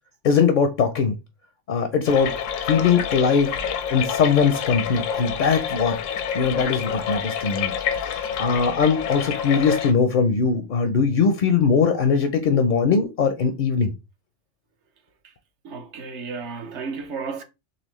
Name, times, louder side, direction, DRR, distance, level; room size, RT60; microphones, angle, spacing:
voice 1, 0.2-1.1 1.7-2.3 2.7-3.5 3.9-6.0 6.3-7.7 8.0-13.9, left 5 dB, 60° left, 0.5 m, -20 dB
sound 1, 2.1-9.9, left 8 dB, 85° left, 1.0 m, -28 dB
voice 2, 15.6-17.4, right 5 dB, 70° right, 1.0 m, -33 dB
4.1 x 3.2 x 3.0 m
omnidirectional pair, 1.3 m